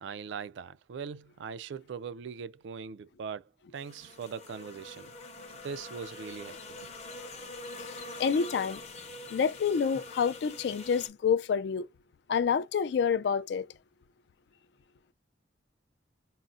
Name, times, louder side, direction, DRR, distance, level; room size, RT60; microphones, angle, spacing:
voice 1, 0.0-3.4 3.7-5.1 5.6-6.9, right 6 dB, 75° right, 0.3 m, -41 dB
sound 1, 3.7-11.1, left 2 dB, 35° left, 0.7 m, -45 dB
voice 2, 7.8-8.8 9.3-11.9 12.3-13.7, left 6 dB, 60° left, 0.3 m, -28 dB
3.8 x 2.0 x 2.4 m
head